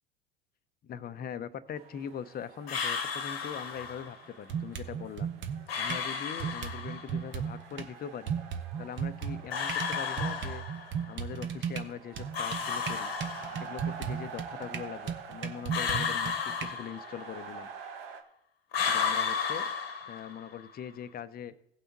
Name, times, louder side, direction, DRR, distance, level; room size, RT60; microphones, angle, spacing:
voice 1, 0.8-5.3 5.8-8.3 8.8-10.6 11.1-13.1 13.5-17.7 18.9-19.6 20.1-21.5, left 8 dB, 30° left, 12 dB, 0.7 m, -41 dB
sound 1, 1.7-18.2, right 6 dB, 75° right, 1.1 m, -48 dB
sound 2, 2.7-4.2 5.7-7.2 9.5-11.0 12.3-13.9 15.7-17.4 18.7-20.6, left 6 dB, 85° left, 1.2 m, -33 dB
sound 3, 3.8-3.9 4.5-6.1 6.4-7.9 8.3-16.7, right 7 dB, 40° right, 1.1 m, -36 dB
17.0 x 5.7 x 4.1 m, 0.75 s
hypercardioid pair, 75°, 30 cm